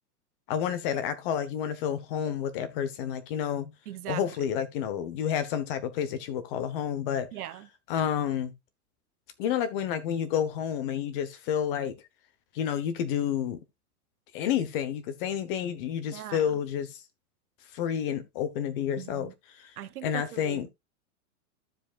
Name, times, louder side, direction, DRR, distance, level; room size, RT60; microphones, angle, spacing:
voice 1, 0.5-3.7 4.1-7.3 7.9-8.5 9.4-12.0 12.5-13.6 14.3-17.0 17.7-19.7 20.0-20.7, left 9 dB, 35° left, 1.0 m, -30 dB
voice 2, 3.9-4.2 7.3-7.7 16.1-16.6 19.0-19.3 19.8-20.7, right 12 dB, 75° right, 1.0 m, -40 dB
14.0 x 5.1 x 2.4 m
supercardioid pair, 160°, 45 cm